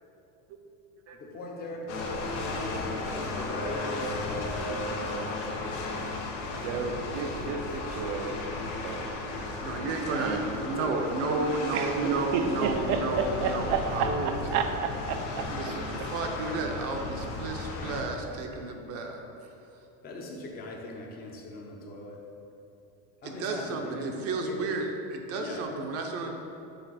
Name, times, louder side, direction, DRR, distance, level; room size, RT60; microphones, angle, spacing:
voice 1, 1.1-6.3 10.5-11.2 20.0-22.3 23.2-24.7 25.4-25.7, left 1 dB, 25° left, 0 dB, 0.7 m, -41 dB
sound 1, 1.9-18.0, left 2 dB, 80° left, 1.0 m, -35 dB
voice 2, 6.6-9.5 10.1-10.5 11.7-15.5, right 5 dB, 85° right, 6 dB, 0.7 m, -31 dB
voice 3, 9.6-14.3 15.5-19.5 23.2-26.4, right 3 dB, 45° right, 3 dB, 0.6 m, -32 dB
6.7 x 3.9 x 4.1 m, 2.7 s
cardioid pair, 155°, 35 cm